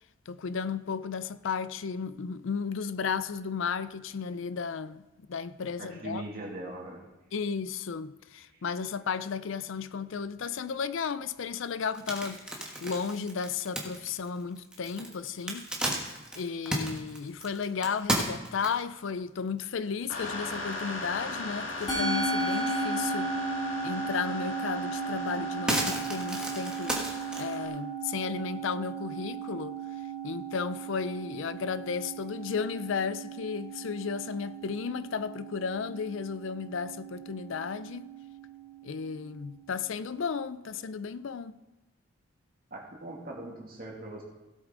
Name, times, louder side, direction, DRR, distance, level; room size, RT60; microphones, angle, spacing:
voice 1, 0.3-5.0 5.3-6.2 7.3-12.4 12.8-15.7 16.4-23.3 23.8-27.0 27.4-29.8 30.2-38.1 38.8-41.6, left 6 dB, 70° left, 0.4 m, -34 dB
voice 2, 5.8-7.0 42.7-44.2, right 1 dB, 45° right, 2.4 m, -40 dB
sound 1, 11.8-19.0 19.6-19.7 20.1-20.2 20.5-21.4 21.7-22.7 23.1-23.2 24.5-24.6 25.0-27.5, right 1 dB, 5° right, 1.4 m, -34 dB
sound 2, 20.1-27.7, left 2 dB, 85° left, 2.0 m, -39 dB
Musical instrument, 21.9-40.4, right 3 dB, 20° left, 2.7 m, -36 dB
16.5 x 8.1 x 3.8 m
head